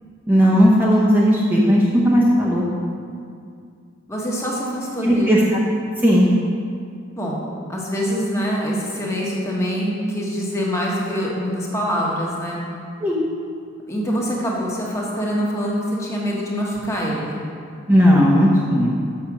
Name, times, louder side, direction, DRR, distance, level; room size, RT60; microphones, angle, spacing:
voice 1, 0.3-2.6 5.0-5.4 6.0-6.3 13.0-13.2 17.9-19.0, equal, 10° right, -7 dB, 0.9 m, -15 dB
voice 2, 4.1-5.5 7.1-7.4 7.7-12.6 13.9-17.5, equal, 15° left, -4 dB, 1.3 m, -24 dB
6.6 x 6.6 x 6.0 m, 2.3 s
head